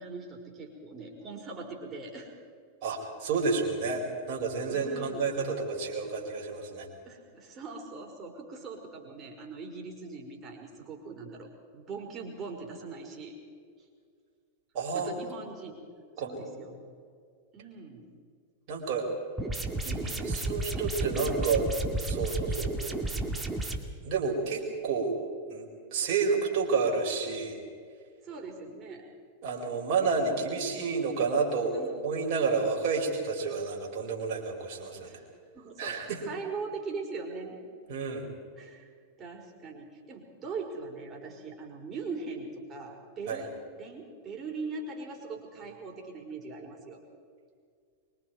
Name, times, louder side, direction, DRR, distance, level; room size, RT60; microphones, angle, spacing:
voice 1, 0.0-2.3 4.7-5.3 7.0-13.3 14.9-15.8 16.2-16.8 17.5-18.1 26.3-26.4 28.2-29.0 31.7-32.0 35.0-35.2 35.5-37.6 38.6-38.9 39.2-47.0, right 4 dB, 25° right, 1 dB, 4.8 m, -41 dB
voice 2, 2.8-6.9 14.7-15.1 16.2-16.6 18.7-19.1 19.8-21.7 22.0-22.9 24.0-25.2 25.5-27.6 29.4-35.1 35.8-36.2 37.9-38.3 43.3-43.4, right 4 dB, 45° right, 0 dB, 4.8 m, -30 dB
sound 1, 19.4-23.8, right 2 dB, 10° right, 2.2 m, -32 dB
24.5 x 24.0 x 4.7 m, 2.1 s
figure-of-eight pair, 90°, 0 cm